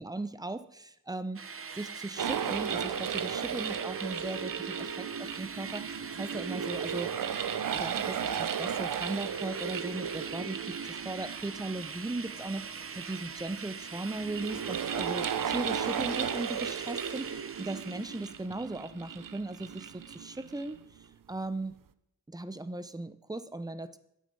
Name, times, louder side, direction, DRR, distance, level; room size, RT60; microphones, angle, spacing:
voice 1, 0.0-1.4 1.8-7.1 7.7-20.8 21.3-21.8 22.3-24.0, right 2 dB, 10° right, 13 dB, 0.9 m, -38 dB
sound 1, 1.4-18.5, right 5 dB, 45° right, 1.0 m, -43 dB
sound 2, 2.2-20.8, right 7 dB, 80° right, 0.9 m, -35 dB
17.0 x 12.0 x 5.5 m, 0.80 s
wide cardioid pair, 130°, 32 cm